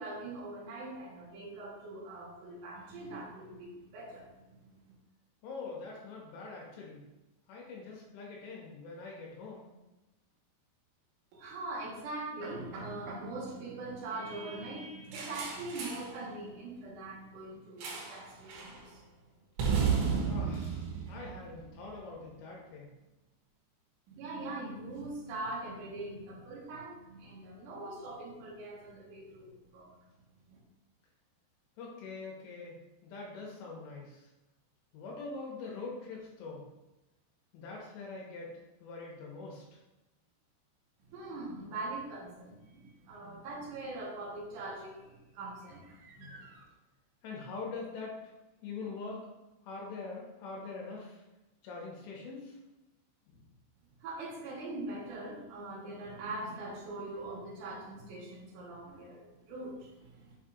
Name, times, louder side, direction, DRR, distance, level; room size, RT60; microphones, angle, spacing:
voice 1, 0.0-4.9 11.3-19.0 24.1-29.9 30.5-30.6 41.1-46.6 54.0-60.4, right 2 dB, 60° right, -3 dB, 2.3 m, -42 dB
voice 2, 5.4-7.0 7.5-9.7 20.3-22.9 31.8-34.3 34.9-36.7 37.5-39.6 46.2-46.3 47.2-48.2 48.6-49.3 49.6-51.2 51.6-52.6 53.3-53.4, left 3 dB, 75° left, -2 dB, 3.5 m, -44 dB
sound 1, 15.1-16.1 17.8-18.2 18.5-18.8 19.6-21.9, right 6 dB, 90° right, 3.4 m, -33 dB
7.4 x 5.4 x 2.6 m, 1.0 s
omnidirectional pair, 5.2 m